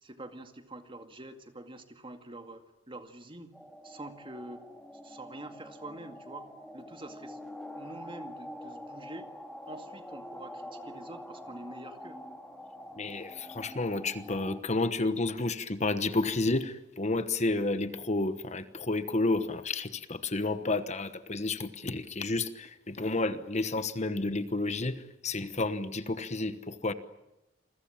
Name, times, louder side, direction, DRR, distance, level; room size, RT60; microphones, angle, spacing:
voice 1, 0.0-3.5 3.8-4.7 5.0-6.5 6.7-7.4 7.7-9.3 9.7-12.2, right 1 dB, 25° right, 7 dB, 2.2 m, -46 dB
sound 1, 3.5-14.6, left 1 dB, 5° left, 2.5 m, -45 dB
voice 2, 13.0-26.9, left 2 dB, 35° left, 11 dB, 1.2 m, -31 dB
28.5 x 22.5 x 8.8 m, 0.91 s
head